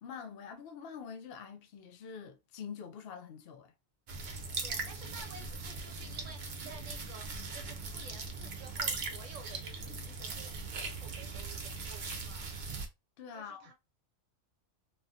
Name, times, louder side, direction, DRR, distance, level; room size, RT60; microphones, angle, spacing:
voice 1, 0.0-3.7 13.2-13.7, left 6 dB, 60° left, 0.7 m, -45 dB
sound 1, 4.1-12.9, right 4 dB, 50° right, 0.6 m, -40 dB
voice 2, 4.6-7.3 7.5-12.6 13.3-13.7, right 4 dB, 70° right, 1.0 m, -52 dB
3.0 x 2.4 x 2.7 m
omnidirectional pair, 1.4 m